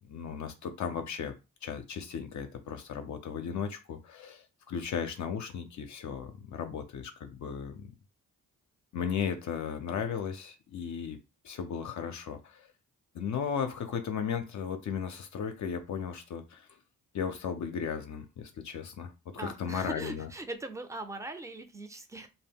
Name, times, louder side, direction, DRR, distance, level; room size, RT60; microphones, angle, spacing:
voice 1, 0.0-1.3 1.6-7.8 8.9-11.2 11.4-12.7 13.1-16.7 17.1-20.3, left 7 dB, 55° left, 0.4 m, -36 dB
voice 2, 19.4-22.3, right 2 dB, 10° right, 0.5 m, -40 dB
2.1 x 2.0 x 3.5 m
cardioid pair, 60°, 34 cm